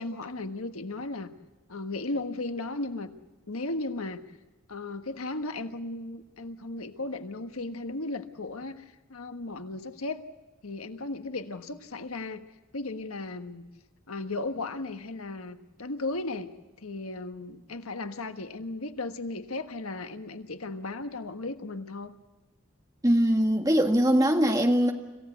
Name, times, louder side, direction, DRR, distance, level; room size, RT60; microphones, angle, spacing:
voice 1, 0.0-1.3 1.7-3.1 3.5-4.2 4.7-10.2 10.6-12.4 12.7-13.6 14.1-16.5 16.8-22.2, left 2 dB, 90° left, 8 dB, 1.4 m, -35 dB
voice 2, 23.0-24.9, equal, 15° right, 4 dB, 1.7 m, -22 dB
26.5 x 15.5 x 8.2 m, 1.2 s
head